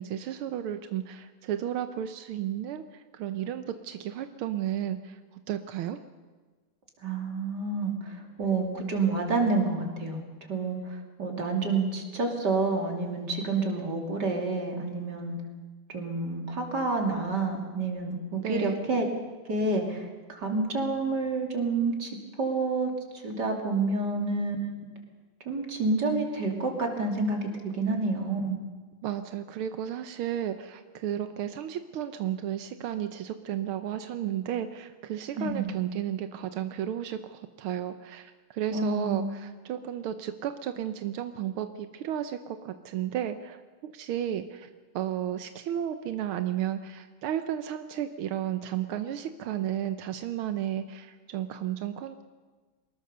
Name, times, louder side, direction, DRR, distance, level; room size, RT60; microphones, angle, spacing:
voice 1, 0.0-6.0 18.4-18.8 29.0-52.2, right 10 dB, 90° right, 9 dB, 1.7 m, -33 dB
voice 2, 7.0-10.2 10.5-15.4 15.9-19.1 19.5-22.1 22.4-22.9 23.2-24.6 25.5-28.6 35.4-35.8 38.7-39.3, right 3 dB, 50° right, 2 dB, 3.4 m, -29 dB
23.5 x 20.5 x 6.7 m, 1.3 s
omnidirectional pair, 2.3 m